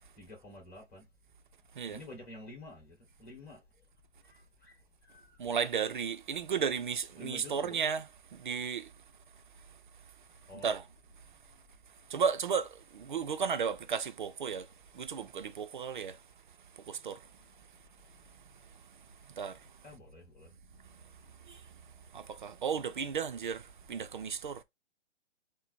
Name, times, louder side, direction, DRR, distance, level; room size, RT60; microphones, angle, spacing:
voice 1, 0.1-1.1 1.9-3.6 4.2-4.8 5.0-5.4 7.2-7.8 10.5-10.7 19.8-20.5, left 2 dB, 15° left, 2.4 m, -49 dB
voice 2, 5.4-8.9 10.5-10.8 12.1-14.7 14.9-16.2 16.9-17.2 19.4-19.6 21.5-21.6 22.1-23.6 23.9-24.6, right 6 dB, 45° right, 0.5 m, -34 dB
4.1 x 2.1 x 4.4 m
hypercardioid pair, 160°, 35 cm